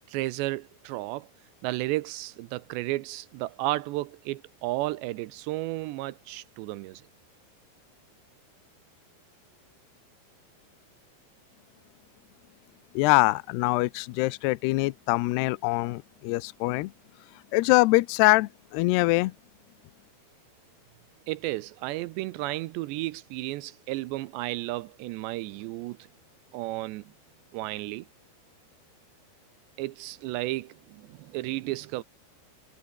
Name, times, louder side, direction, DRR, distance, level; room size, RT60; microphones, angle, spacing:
voice 1, 0.1-1.3 1.6-7.1 21.3-26.0 26.5-27.1 27.5-28.1 29.8-32.0, right 18 dB, 85° right, 3.0 m, -33 dB
voice 2, 13.0-16.9 17.5-19.3, left 22 dB, 80° left, 2.7 m, -23 dB
omnidirectional pair, 5.0 m